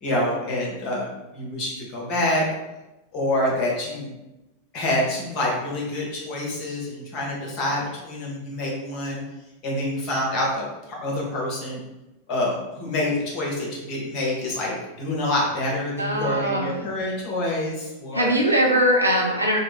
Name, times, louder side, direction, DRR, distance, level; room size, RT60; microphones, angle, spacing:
voice 1, 0.0-1.1 1.3-2.4 3.1-4.1 4.7-9.2 9.6-11.8 12.3-18.3, left 1 dB, 35° left, -3 dB, 1.1 m, -27 dB
voice 2, 16.0-16.7 18.1-19.6, right 1 dB, 85° right, -1 dB, 0.6 m, -21 dB
3.1 x 2.1 x 3.5 m, 1.0 s
figure-of-eight pair, 90°, 0 cm